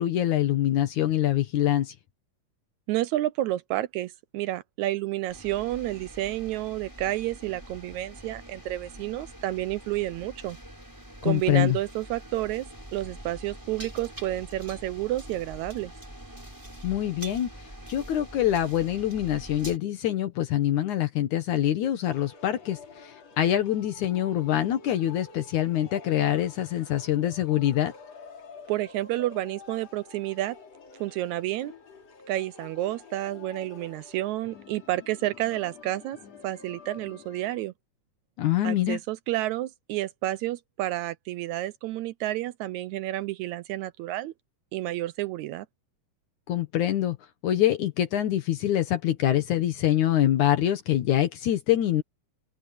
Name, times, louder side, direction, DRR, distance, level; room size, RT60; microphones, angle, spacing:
voice 1, 0.0-1.9 11.2-11.8 16.8-17.5 17.9-27.9 38.4-39.0 46.5-47.2 47.4-52.0, left 12 dB, 70° left, 2.7 m, -25 dB
voice 2, 2.9-10.6 11.2-12.7 12.9-15.9 28.7-30.6 31.0-31.7 32.3-36.2 36.4-37.7 38.6-44.3 44.7-45.7, right 15 dB, 80° right, 1.8 m, -30 dB
sound 1, 5.3-19.8, right 1 dB, 5° right, 6.0 m, -45 dB
sound 2, 22.1-37.6, left 5 dB, 55° left, 3.9 m, -48 dB
omnidirectional pair, 3.6 m